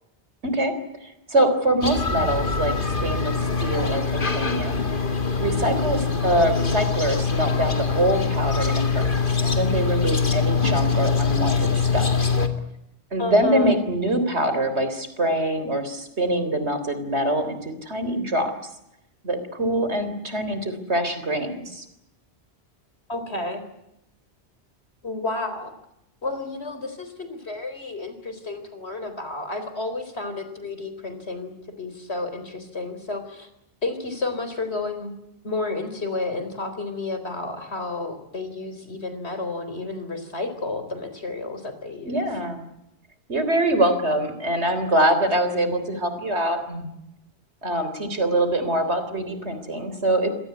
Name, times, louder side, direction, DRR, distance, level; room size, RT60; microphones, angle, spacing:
voice 1, 1.0-4.8 5.4-9.1 9.4-12.1 13.1-18.5 19.2-21.8 42.0-42.6 43.3-46.9 47.6-50.4, right 1 dB, 80° right, 10 dB, 3.9 m, -24 dB
sound 1, 1.8-12.5, left 5 dB, 50° left, 2.3 m, -23 dB
voice 2, 13.2-13.8 23.1-23.6 25.0-25.7 26.2-31.5 31.8-33.5 33.8-35.1 35.4-42.3, left 2 dB, 75° left, 9 dB, 4.3 m, -31 dB
26.0 x 18.5 x 9.6 m, 0.84 s
omnidirectional pair, 1.1 m